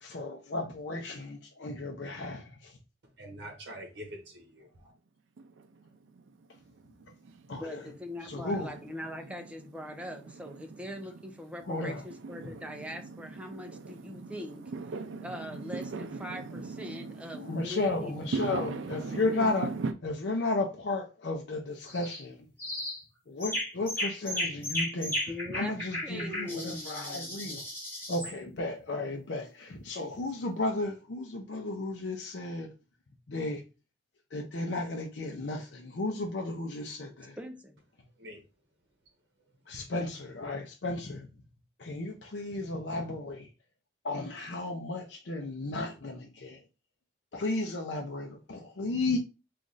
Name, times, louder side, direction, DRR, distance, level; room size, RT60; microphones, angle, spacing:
voice 1, 0.0-2.7 7.5-7.8 8.2-8.7 11.7-12.0 17.3-19.7 20.0-22.4 23.3-25.2 25.5-27.6 28.1-32.7 33.3-33.6 34.3-37.4 39.7-41.3 41.8-43.5 44.0-46.6 47.3-49.2, left 2 dB, 65° left, 0.6 m, -34 dB
voice 2, 3.2-4.9 38.2-38.4, equal, 60° right, 0.9 m, -45 dB
Fireworks, 5.4-19.9, right 4 dB, 80° right, 0.4 m, -40 dB
voice 3, 7.6-14.7 15.2-18.3 19.1-19.7 25.3-27.5 37.4-37.8, equal, 5° right, 0.4 m, -41 dB
sound 1, 21.9-22.2 22.6-23.0 23.4-28.3, left 1 dB, 15° left, 1.6 m, -35 dB
3.1 x 2.4 x 3.8 m
head